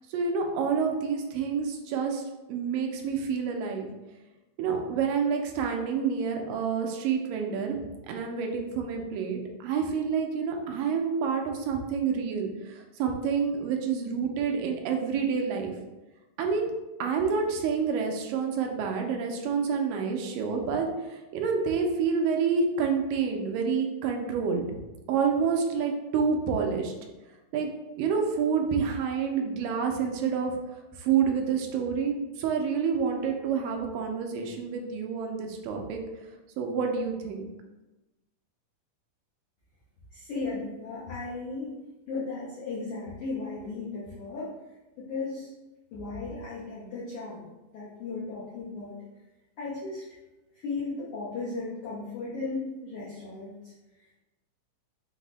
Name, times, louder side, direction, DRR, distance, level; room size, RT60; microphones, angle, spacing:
voice 1, 0.1-2.2 2.5-3.9 4.6-7.8 8.1-15.7 16.4-16.7 17.0-24.7 25.1-26.9 27.5-27.7 28.0-30.5 31.0-36.0 36.6-37.5, right 6 dB, 90° right, 2 dB, 2.3 m, -28 dB
voice 2, 40.1-41.7 42.1-44.5 45.0-45.5 45.9-47.4 47.7-48.9 49.6-50.0 50.6-53.7, left 3 dB, 85° left, -7 dB, 1.2 m, -35 dB
6.1 x 2.0 x 3.9 m, 1.1 s
omnidirectional pair, 3.8 m